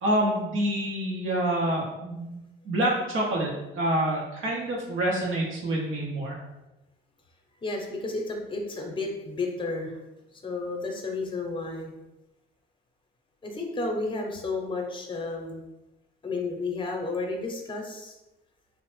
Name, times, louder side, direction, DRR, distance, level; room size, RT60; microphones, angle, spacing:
voice 1, 0.0-2.3 2.6-6.4, right 1 dB, 90° right, -4 dB, 0.7 m, -27 dB
voice 2, 7.6-10.0 10.3-11.9 13.4-15.6 16.2-18.2, left 3 dB, 25° left, 2 dB, 0.6 m, -32 dB
2.9 x 2.0 x 3.1 m, 0.98 s
cardioid pair, 90°, 20 cm